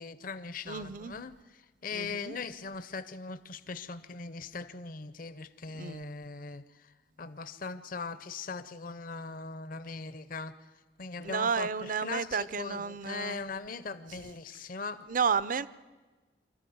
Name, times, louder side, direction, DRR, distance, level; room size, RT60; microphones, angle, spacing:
voice 1, 0.0-10.6 11.0-15.1, left 4 dB, 50° left, 0.7 m, -40 dB
voice 2, 0.7-1.2 1.9-2.4 5.7-6.1 11.2-13.5 15.1-15.7, right 6 dB, 50° right, 0.6 m, -32 dB
24.0 x 13.5 x 9.4 m
head